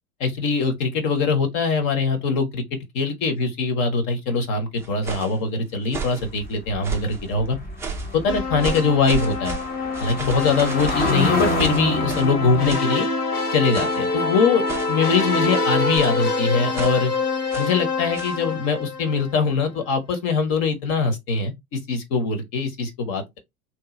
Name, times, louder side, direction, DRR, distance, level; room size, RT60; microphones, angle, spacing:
voice 1, 0.2-7.6 8.1-9.5 10.0-13.1 13.5-17.1 17.6-23.4, left 4 dB, 40° left, 1.1 m, -22 dB
sound 1, 4.8-5.4 5.8-6.3 6.8-7.2 7.8-8.2 8.6-12.4 12.7-12.9 13.7-14.1 14.6-15.1 15.9-16.2 16.7-17.0 17.5-17.8 18.1-18.4, right 6 dB, 5° right, 0.4 m, -33 dB
sound 2, 6.2-12.7, left 1 dB, 20° left, 0.9 m, -28 dB
sound 3, 8.3-19.5, left 3 dB, 85° left, 0.9 m, -26 dB
3.1 x 2.6 x 3.7 m
figure-of-eight pair, 80°, 45 cm